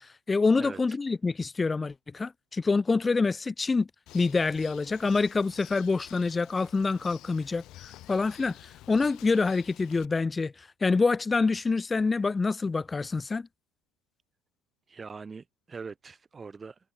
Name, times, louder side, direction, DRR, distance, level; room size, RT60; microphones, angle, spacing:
voice 1, 0.3-3.9 4.1-8.6 8.9-10.5 10.8-13.5, left 4 dB, 20° left, 0.5 m, -26 dB
Bird, 4.1-10.1, left 15 dB, 55° left, 4.9 m, -51 dB
voice 2, 14.9-16.8, right 5 dB, 25° right, 4.8 m, -42 dB
figure-of-eight pair, 65°, 0 cm